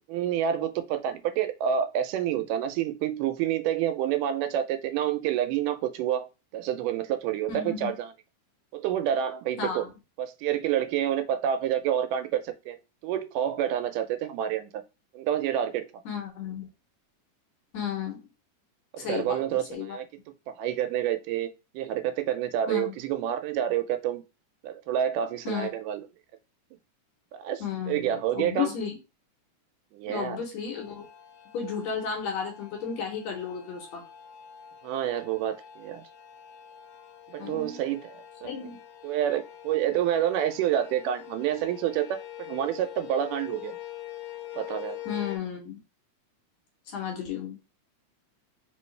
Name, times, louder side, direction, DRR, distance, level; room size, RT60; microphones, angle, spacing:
voice 1, 0.1-8.1 8.7-9.9 10.2-14.8 15.1-15.9 18.9-20.1 20.5-21.5 21.7-24.2 24.6-26.1 27.4-27.6 27.9-28.8 29.9-30.4 34.8-36.0 37.3-38.1 38.4-38.5 39.0-43.8 44.6-45.0, right 10 dB, 85° right, 2.1 m, -28 dB
voice 2, 7.5-8.0 9.6-9.9 16.1-16.7 17.7-18.3 19.0-19.4 19.7-20.0 22.7-22.9 25.5-25.7 27.6-29.0 30.1-31.1 31.5-34.0 37.4-37.8 38.4-38.8 45.1-45.8 46.9-47.6, left 7 dB, 65° left, 2.0 m, -33 dB
sound 1, 30.8-45.4, left 12 dB, 90° left, 2.2 m, -44 dB
4.7 x 3.0 x 3.2 m
omnidirectional pair, 3.7 m